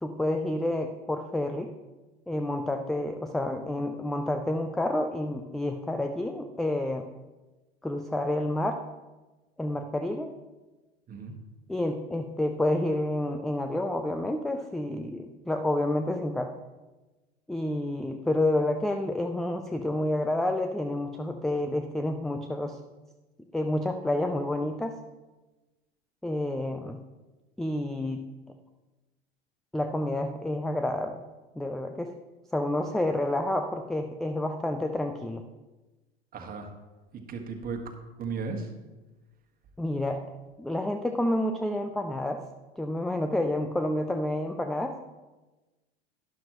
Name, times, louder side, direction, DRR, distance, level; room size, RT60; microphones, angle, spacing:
voice 1, 0.0-1.7 2.3-7.1 7.8-8.8 9.6-10.3 11.7-16.5 17.5-22.8 23.5-25.0 26.2-27.0 27.6-28.3 29.7-31.2 31.6-32.1 32.5-35.4 39.8-40.3 40.6-42.4 42.8-45.0, left 1 dB, ahead, 6 dB, 0.3 m, -29 dB
voice 2, 36.3-36.7 37.1-37.8 38.2-38.7, right 5 dB, 30° right, 4 dB, 1.6 m, -35 dB
12.0 x 11.0 x 3.0 m, 1.1 s
figure-of-eight pair, 85°, 32 cm